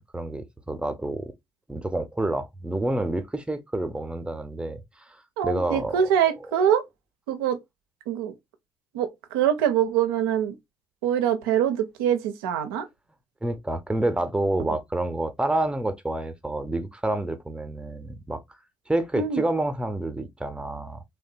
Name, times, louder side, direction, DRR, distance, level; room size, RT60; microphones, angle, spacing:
voice 1, 0.0-1.3 1.7-6.0 13.4-18.4 18.9-21.0, right 1 dB, 10° right, 0.6 m, -28 dB
voice 2, 5.4-6.8 7.3-7.6 8.1-8.3 8.9-10.5 11.0-12.8 19.2-19.4, right 9 dB, 80° right, 0.4 m, -24 dB
2.8 x 2.2 x 2.5 m
hypercardioid pair, 50°, 12 cm